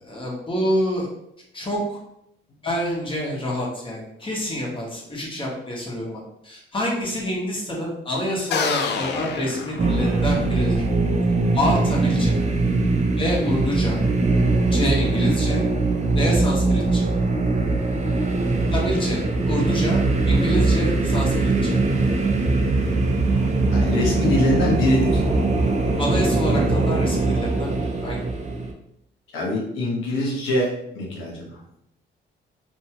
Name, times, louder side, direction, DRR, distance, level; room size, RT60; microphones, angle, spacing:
voice 1, 0.0-1.1 1.5-2.0 2.6-10.8 11.5-12.4 13.2-14.0 14.7-15.6 16.2-17.1 18.7-20.0 20.3-21.8 26.0-27.8 28.0-28.2, equal, 25° left, -3 dB, 1.0 m, -27 dB
sound 1, 8.5-10.4, left 5 dB, 60° left, 0.4 m, -27 dB
sound 2, 9.8-28.7, right 3 dB, 35° right, 0.5 m, -21 dB
voice 2, 23.7-25.2 29.3-31.6, left 1 dB, 85° left, -3 dB, 1.0 m, -24 dB
2.7 x 2.2 x 2.8 m, 0.78 s
cardioid pair, 90°, 20 cm